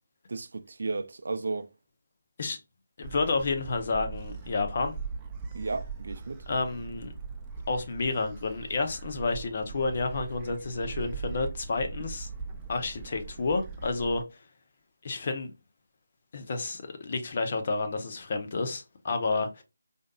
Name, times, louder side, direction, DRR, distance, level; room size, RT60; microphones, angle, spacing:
voice 1, 0.3-1.7 5.5-6.4, right 3 dB, 65° right, 0.4 m, -34 dB
voice 2, 3.0-4.9 6.5-7.1 7.7-12.3 12.7-14.2 15.0-15.5 16.3-19.6, left 3 dB, 45° left, 0.9 m, -30 dB
Gull seagull, 3.0-14.2, right 5 dB, 15° right, 0.5 m, -40 dB
4.9 x 2.7 x 2.4 m
figure-of-eight pair, 155°, 0 cm